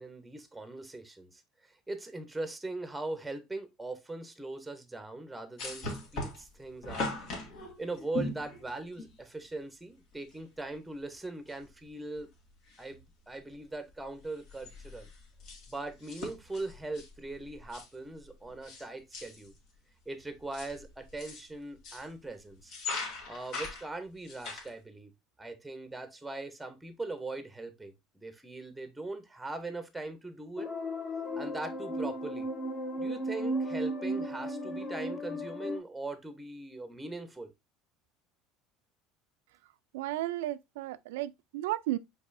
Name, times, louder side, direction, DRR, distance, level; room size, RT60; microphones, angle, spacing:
voice 1, 0.0-7.1 7.8-12.3 12.8-15.1 15.7-19.5 20.1-22.7 23.3-25.1 25.4-30.7 31.4-32.5 33.0-37.5, right 2 dB, 5° right, 0.8 m, -40 dB
sound 1, 5.6-9.2 10.3-10.4 10.7-10.8 11.5-11.9 12.2-13.0 13.4-13.6 13.9-18.8 19.1-19.6 20.2-22.1 22.6-24.7, left 3 dB, 60° left, 2.0 m, -40 dB
sound 2, 30.6-35.8, equal, 35° left, 1.5 m, -35 dB
voice 2, 39.6-42.0, right 15 dB, 90° right, 0.3 m, -34 dB
5.2 x 3.9 x 2.6 m
supercardioid pair, 120°, 0 cm